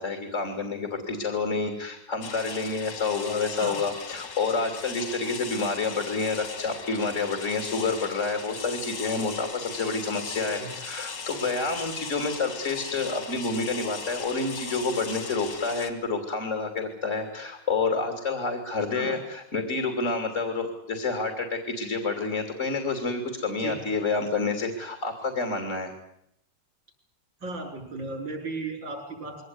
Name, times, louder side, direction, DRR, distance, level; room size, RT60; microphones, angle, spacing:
voice 1, 0.0-25.9, left 4 dB, 40° left, 5 dB, 3.4 m, -29 dB
sound 1, 2.2-15.9, left 5 dB, 70° left, 2.6 m, -38 dB
voice 2, 27.4-29.4, right 3 dB, 90° right, 3 dB, 7.1 m, -35 dB
23.0 x 18.0 x 9.6 m, 0.78 s
omnidirectional pair, 2.0 m